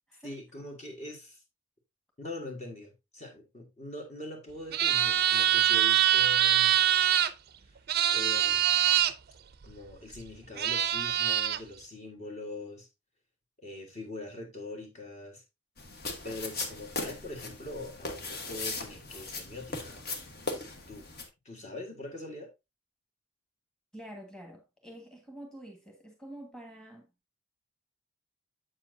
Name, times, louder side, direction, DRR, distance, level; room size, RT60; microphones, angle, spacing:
voice 1, 0.1-1.4 2.2-6.8 7.6-7.8 8.1-9.1 9.6-12.9 13.6-15.4 16.2-20.0 20.9-21.1 21.4-22.5, left 2 dB, 30° left, 1.6 m, -43 dB
sound 1, 4.7-7.3 7.9-9.1 10.1-10.2 10.6-11.6, right 11 dB, 45° right, 0.5 m, -24 dB
sound 2, 15.8-21.3, left 3 dB, 45° left, 1.3 m, -38 dB
voice 2, 23.9-27.1, right 1 dB, 5° left, 1.5 m, -47 dB
7.8 x 7.3 x 2.6 m
head